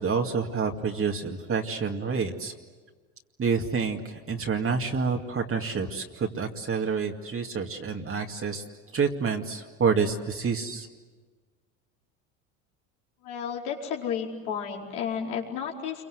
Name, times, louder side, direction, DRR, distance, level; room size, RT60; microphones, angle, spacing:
voice 1, 0.0-2.5 3.4-8.6 8.9-10.9, right 5 dB, 30° right, 2 dB, 2.3 m, -28 dB
voice 2, 13.2-16.0, left 7 dB, 75° left, -1 dB, 4.9 m, -32 dB
29.0 x 23.5 x 8.0 m, 1.4 s
hypercardioid pair, 85°, 44 cm